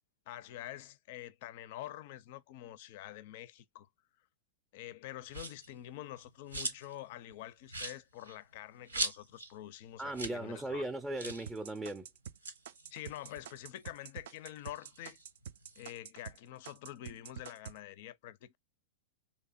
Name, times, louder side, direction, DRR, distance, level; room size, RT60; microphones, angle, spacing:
voice 1, 0.3-3.9 4.7-10.8 12.9-15.2 15.8-18.6, left 13 dB, 50° left, 0.4 m, -47 dB
sound 1, 5.3-5.7 6.1-7.0 7.3-7.4 7.7-9.5 9.8-9.9 10.1-10.4 10.7-10.8 11.2-11.5 12.2-14.0 14.4-15.9, right 2 dB, 90° right, 0.8 m, -40 dB
voice 2, 10.0-12.1, right 2 dB, 10° right, 0.5 m, -38 dB
sound 2, 11.5-16.4 16.7-17.8, right 8 dB, 60° right, 0.3 m, -47 dB
3.3 x 2.8 x 2.4 m
figure-of-eight pair, 100°, 0 cm